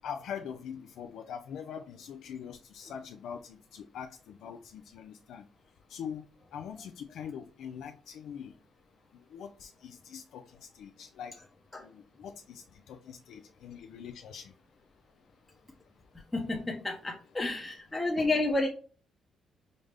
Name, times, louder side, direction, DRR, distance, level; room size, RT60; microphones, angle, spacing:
voice 1, 0.0-5.4 5.9-6.2 6.5-8.5 9.3-11.4 11.8-14.5, left 7 dB, 75° left, 6 dB, 0.3 m, -43 dB
voice 2, 16.3-18.7, left 2 dB, 15° left, -1 dB, 0.7 m, -30 dB
5.0 x 2.1 x 3.3 m, 0.40 s
cardioid pair, 90°, 0 cm